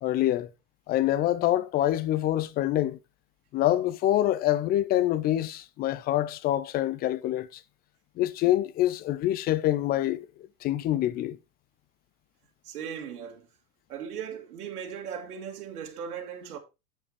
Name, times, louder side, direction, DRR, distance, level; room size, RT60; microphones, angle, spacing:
voice 1, 0.0-0.5 0.9-3.0 3.5-7.6 8.2-10.3 10.6-11.4, left 13 dB, 20° left, 0.5 m, -26 dB
voice 2, 12.6-13.5 13.9-16.6, right 7 dB, 70° right, 2.0 m, -38 dB
8.1 x 7.4 x 3.4 m
hypercardioid pair, 110°, 46 cm